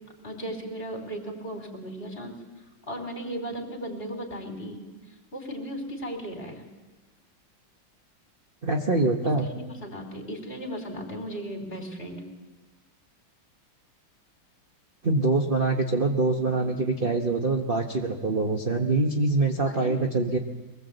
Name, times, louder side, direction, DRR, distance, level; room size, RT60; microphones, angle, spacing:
voice 1, 0.2-2.3 2.9-4.8 5.3-6.6 9.4-12.2 19.6-20.0, right 1 dB, 30° left, 4 dB, 3.4 m, -36 dB
voice 2, 8.6-9.5 15.0-20.4, right 3 dB, 30° right, 3 dB, 1.2 m, -24 dB
23.0 x 19.5 x 8.0 m, 1.2 s
omnidirectional pair, 2.2 m